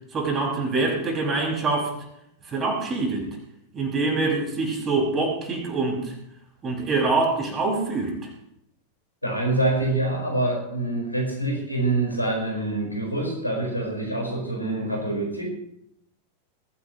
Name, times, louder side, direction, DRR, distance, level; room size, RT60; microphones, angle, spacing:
voice 1, 0.1-1.9 2.5-3.3 3.7-6.1 6.6-8.2, right 3 dB, 25° right, -1 dB, 6.0 m, -25 dB
voice 2, 9.2-15.5, right 2 dB, 85° left, 0 dB, 4.9 m, -26 dB
21.0 x 16.0 x 3.1 m, 0.76 s
figure-of-eight pair, 90°, 0 cm